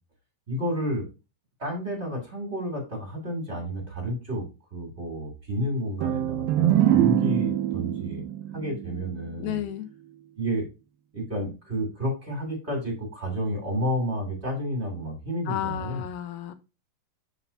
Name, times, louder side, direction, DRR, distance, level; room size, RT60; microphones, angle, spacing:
voice 1, 0.5-1.1 1.6-4.5 4.7-8.2 8.5-9.6 10.4-10.7 11.1-16.0, equal, 20° right, 0 dB, 1.8 m, -30 dB
sound 1, 6.0-9.7, right 12 dB, 80° right, 2.2 m, -24 dB
voice 2, 9.4-9.9 15.5-16.5, left 12 dB, 80° left, 10 dB, 2.7 m, -32 dB
7.5 x 6.6 x 2.7 m, 0.28 s
omnidirectional pair, 4.7 m